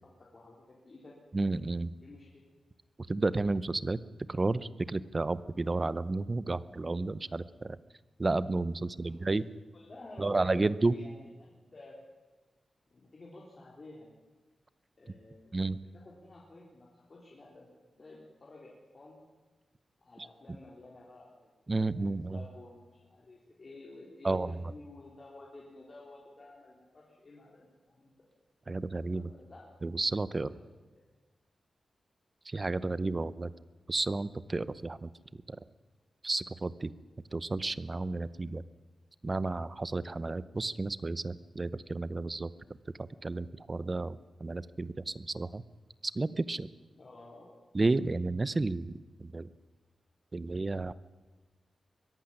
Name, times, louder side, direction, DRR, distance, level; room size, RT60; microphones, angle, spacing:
voice 1, 0.3-1.1 2.0-2.4 9.0-12.0 12.9-14.1 15.0-15.6 15.9-17.7 18.0-19.2 20.0-28.1 29.1-29.8 30.3-30.6 47.0-47.6, left 2 dB, 35° left, -4 dB, 3.7 m, -52 dB
voice 2, 1.3-1.9 3.1-4.0 4.3-7.8 8.2-9.4 10.2-11.0 15.5-15.8 21.7-22.4 24.2-24.6 28.7-29.3 29.8-30.5 32.5-33.5 33.9-35.1 35.5-35.6 36.2-36.9 37.3-38.6 39.2-42.5 43.0-45.6 46.0-46.7 47.7-49.5 50.3-50.9, right 3 dB, 25° right, 17 dB, 0.7 m, -32 dB
22.0 x 12.0 x 9.9 m, 1.3 s
wide cardioid pair, 145°, 0 cm